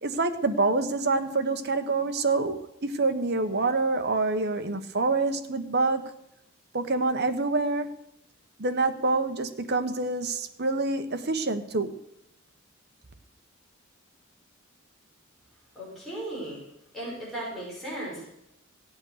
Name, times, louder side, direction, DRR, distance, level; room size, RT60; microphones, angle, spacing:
voice 1, 0.0-6.1 6.7-7.9 8.6-12.0, right 3 dB, 50° right, 7 dB, 1.2 m, -26 dB
voice 2, 15.7-16.6 16.9-18.2, right 1 dB, ahead, -7 dB, 6.2 m, -36 dB
17.5 x 8.7 x 6.6 m, 0.82 s
head